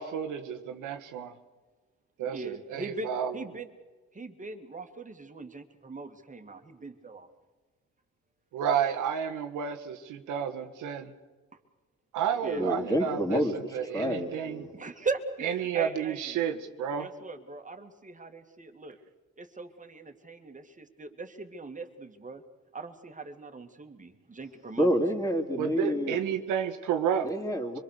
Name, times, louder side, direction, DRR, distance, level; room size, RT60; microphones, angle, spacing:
voice 1, 0.0-1.3 2.2-3.3 8.5-11.1 12.1-14.6 15.4-17.1 25.6-27.3, right 8 dB, 90° right, 6 dB, 1.6 m, -31 dB
voice 2, 2.2-3.7 4.1-7.3 12.4-12.7 14.7-16.4 17.0-19.0 19.4-22.4 22.7-24.9, right 3 dB, 25° right, 7 dB, 2.3 m, -40 dB
voice 3, 12.6-14.7 24.8-26.2 27.2-27.8, equal, 10° left, 3 dB, 3.3 m, -28 dB
25.5 x 22.0 x 6.7 m, 1.3 s
cardioid pair, 90°, 30 cm